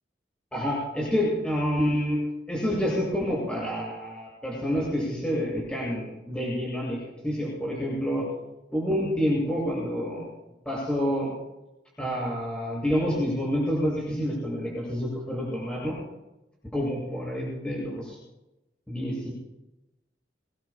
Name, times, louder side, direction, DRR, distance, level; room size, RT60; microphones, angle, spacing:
voice 1, 0.5-2.2 2.5-7.0 7.2-8.2 8.7-10.3 10.7-11.3 12.0-16.0 16.7-18.2 18.9-19.3, equal, 5° left, -5 dB, 7.6 m, -28 dB
24.5 x 22.0 x 2.4 m, 0.97 s
head